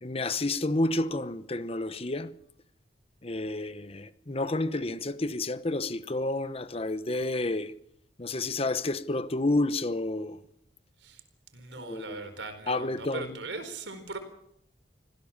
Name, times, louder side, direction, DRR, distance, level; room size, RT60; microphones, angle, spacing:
voice 1, 0.0-2.3 3.2-7.7 8.2-10.4 11.8-12.2 12.7-13.4, left 2 dB, 35° left, 1.0 m, -30 dB
voice 2, 11.5-14.2, right 3 dB, 85° right, 4.4 m, -39 dB
25.5 x 16.0 x 7.4 m
head